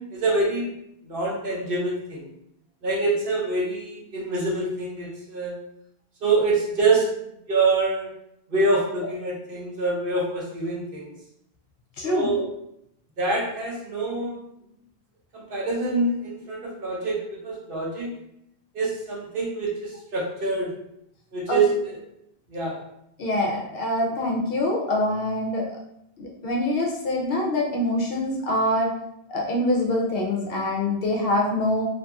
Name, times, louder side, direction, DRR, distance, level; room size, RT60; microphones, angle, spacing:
voice 1, 0.1-0.7 1.0-2.3 2.8-5.5 6.2-7.1 7.5-8.1 8.5-11.1 12.0-12.4 13.2-14.4 15.3-18.2 18.7-20.7 21.3-21.9 22.5-22.8, right 3 dB, 60° right, -4 dB, 0.9 m, -25 dB
voice 2, 12.0-12.3 21.5-21.6 23.2-25.7 26.2-28.9 29.3-31.9, left 1 dB, 65° left, -1 dB, 0.8 m, -24 dB
2.8 x 2.7 x 2.3 m, 0.78 s
omnidirectional pair, 1.1 m